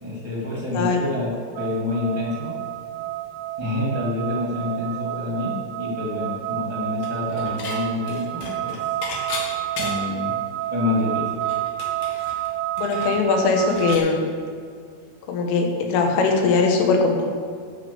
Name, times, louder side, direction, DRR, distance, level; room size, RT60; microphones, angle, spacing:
voice 1, 0.0-1.3 1.6-2.6 3.6-8.9 9.8-10.4 10.7-11.4, left 2 dB, 25° right, -5 dB, 0.8 m, -27 dB
sound 1, 1.6-14.0, right 15 dB, 85° right, 3.0 m, -29 dB
Dishes pots and pans / Chink clink, 7.0-7.8 8.1-10.2 10.6-10.7 11.0-14.1, left 3 dB, 65° left, 3.3 m, -35 dB
voice 2, 12.8-14.2 15.3-17.3, left 4 dB, 85° left, 3 dB, 3.8 m, -20 dB
12.0 x 6.2 x 7.1 m, 2.2 s
omnidirectional pair, 5.6 m